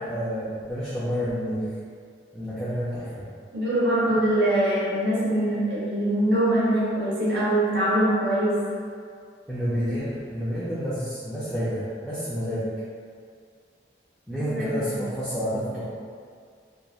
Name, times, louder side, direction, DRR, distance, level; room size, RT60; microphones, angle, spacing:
voice 1, 0.0-1.7 2.3-3.2 9.5-12.7 14.3-15.8, equal, 5° left, -12 dB, 0.4 m, -29 dB
voice 2, 3.5-8.6 14.4-15.0, right 1 dB, 80° right, -9 dB, 0.8 m, -23 dB
3.0 x 2.4 x 2.3 m, 2.2 s
head